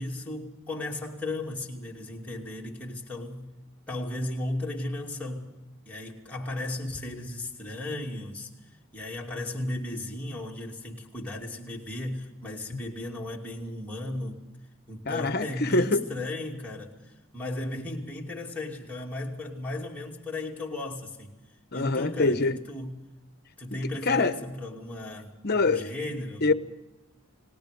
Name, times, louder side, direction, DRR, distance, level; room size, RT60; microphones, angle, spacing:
voice 1, 0.0-3.5 3.9-5.5 5.8-8.5 8.9-14.4 14.9-21.3 21.7-23.0 23.6-26.5, left 1 dB, 5° left, 2.6 m, -35 dB
voice 2, 15.1-16.0 21.7-22.6 23.7-23.8 24.1-24.4 25.4-25.9 26.4-26.5, left 3 dB, 45° left, 1.0 m, -24 dB
29.5 x 18.5 x 5.2 m
head